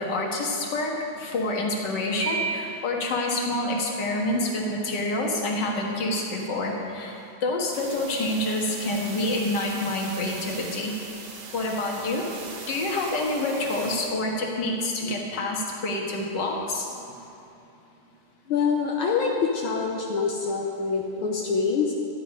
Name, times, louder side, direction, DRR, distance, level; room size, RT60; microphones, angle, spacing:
voice 1, 0.0-10.9 11.5-12.3 12.7-16.9, left 2 dB, 55° left, 0 dB, 2.0 m, -27 dB
Piano, 2.2-3.2, right 5 dB, 35° left, 2.3 m, -31 dB
sound 1, 7.7-14.1, right 3 dB, 70° right, 0.5 m, -40 dB
voice 2, 18.5-21.9, left 5 dB, 75° left, -1 dB, 1.7 m, -25 dB
12.5 x 10.5 x 5.1 m, 2.7 s
omnidirectional pair, 2.3 m